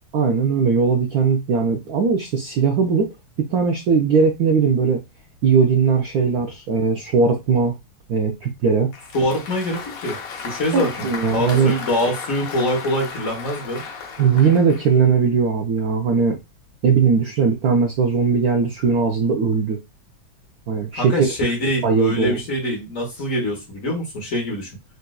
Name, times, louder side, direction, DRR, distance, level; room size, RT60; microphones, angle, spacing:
voice 1, 0.1-3.1 3.4-5.0 5.4-7.7 8.1-8.9 10.7-11.7 14.2-16.4 16.8-19.8 20.7-21.3 21.8-22.4, right 5 dB, 90° right, 3 dB, 0.8 m, -19 dB
Applause, 8.9-14.9, left 5 dB, 70° left, 0.8 m, -35 dB
voice 2, 9.1-10.2 10.4-13.8 20.9-24.7, equal, 50° left, 0 dB, 1.2 m, -24 dB
4.0 x 2.4 x 2.3 m, 0.22 s
omnidirectional pair, 2.2 m